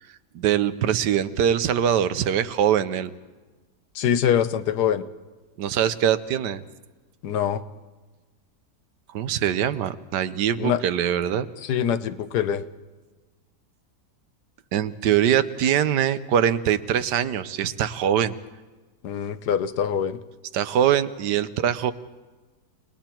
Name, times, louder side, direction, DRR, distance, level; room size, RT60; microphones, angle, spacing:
voice 1, 0.3-3.1 5.6-6.6 9.1-11.5 14.7-18.4 20.5-21.9, right 9 dB, 85° right, 13 dB, 1.4 m, -23 dB
voice 2, 4.0-5.0 7.2-7.6 10.6-10.8 11.6-12.6 19.0-20.2, left 9 dB, 75° left, 12 dB, 1.4 m, -24 dB
29.5 x 19.5 x 4.5 m, 1.3 s
omnidirectional pair, 1.8 m